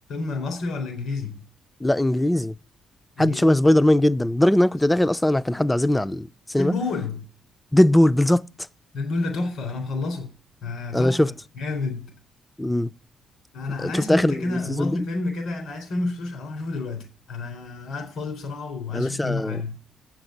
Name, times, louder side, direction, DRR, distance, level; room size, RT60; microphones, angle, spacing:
voice 1, 0.1-1.4 3.2-3.7 6.5-7.2 8.9-10.3 10.6-12.1 13.5-19.8, left 3 dB, 75° left, 3.8 m, -30 dB
voice 2, 1.8-2.5 3.2-6.7 7.7-8.4 10.9-11.3 12.6-12.9 13.8-15.0 18.9-19.6, left 1 dB, 10° left, 0.4 m, -20 dB
7.9 x 6.0 x 7.8 m
cardioid pair, 90°, 0 cm